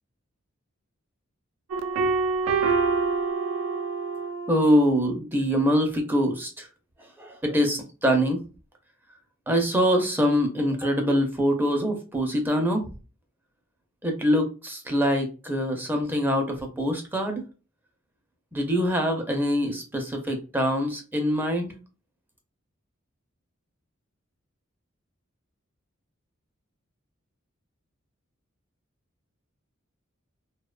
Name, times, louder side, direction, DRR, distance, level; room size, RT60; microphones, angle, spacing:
sound 1, 1.7-4.6, right 4 dB, 85° right, 0.3 m, -25 dB
voice 1, 4.5-6.7 7.2-8.4 9.5-12.8 14.0-17.4 18.5-21.7, equal, 10° right, 3 dB, 0.4 m, -24 dB
2.6 x 2.1 x 2.3 m, 0.33 s
head